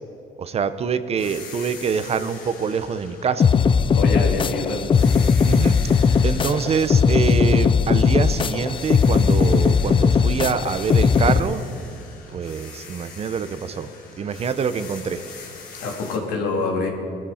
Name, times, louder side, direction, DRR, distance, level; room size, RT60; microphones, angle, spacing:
voice 1, 0.4-3.5 5.5-6.0 6.2-11.6 12.3-13.9 14.2-15.2, right 6 dB, 40° right, 12 dB, 0.7 m, -25 dB
sound 1, 1.2-4.4 4.9-8.3 8.7-16.2, left 4 dB, 60° left, 3.7 m, -42 dB
sound 2, 3.4-11.4, left 5 dB, 30° left, 0.5 m, -18 dB
voice 2, 3.9-4.8 15.8-16.9, left 3 dB, 85° left, 0 dB, 2.9 m, -25 dB
20.0 x 13.5 x 4.3 m, 2.7 s
cardioid pair, 110°, 17 cm